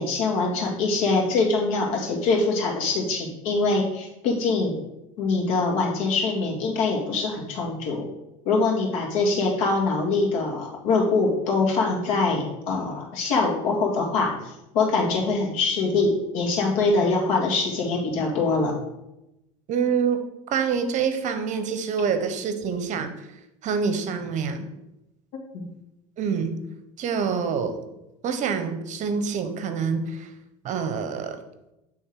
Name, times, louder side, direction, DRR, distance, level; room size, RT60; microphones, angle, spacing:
voice 1, 0.0-4.7 5.2-8.1 8.5-18.7 25.5-25.6, left 3 dB, 75° left, -1 dB, 2.0 m, -24 dB
voice 2, 19.7-20.2 20.5-23.3 23.6-24.7 26.2-26.6 27.0-27.8 28.2-30.3 30.6-31.4, right 6 dB, 45° right, 9 dB, 0.9 m, -26 dB
8.6 x 3.6 x 4.7 m, 0.92 s
supercardioid pair, 110°, 18 cm